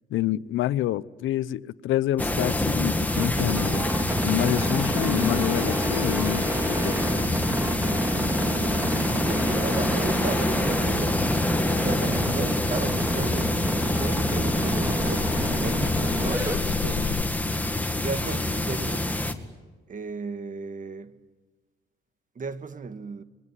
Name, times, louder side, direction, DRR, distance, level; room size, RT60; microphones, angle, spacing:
voice 1, 0.1-3.9 4.2-6.9, left 14 dB, 85° left, 0.8 m, -27 dB
sound 1, 2.2-19.3, left 1 dB, 10° left, 2.1 m, -27 dB
sound 2, 3.1-16.6, equal, 10° right, 4.0 m, -28 dB
voice 2, 8.5-11.3 11.7-13.6 14.0-17.2 18.0-19.1 19.9-21.2 22.4-23.2, right 4 dB, 40° right, 1.7 m, -35 dB
sound 3, 10.5-17.2, left 8 dB, 60° left, 1.1 m, -36 dB
27.0 x 22.0 x 9.9 m
cardioid pair, 90°, 20 cm